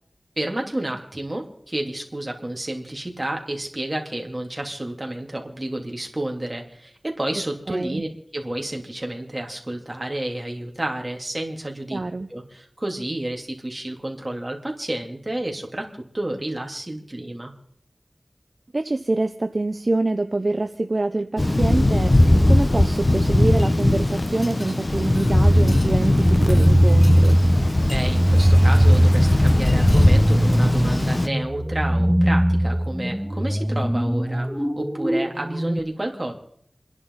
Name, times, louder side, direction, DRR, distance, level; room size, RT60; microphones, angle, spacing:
voice 1, 0.4-8.1 8.3-12.0 12.3-17.5 27.9-34.5 34.8-36.3, right 1 dB, 30° right, 1 dB, 3.5 m, -30 dB
voice 2, 7.7-8.0 11.9-12.3 18.7-27.3, right 2 dB, 55° right, 8 dB, 0.8 m, -25 dB
Thunder, 21.4-31.3, left 1 dB, 40° left, 1.1 m, -19 dB
sound 1, 25.4-35.8, equal, 5° right, 1.3 m, -20 dB
29.0 x 11.0 x 4.2 m, 0.66 s
wide cardioid pair, 45°, 0 cm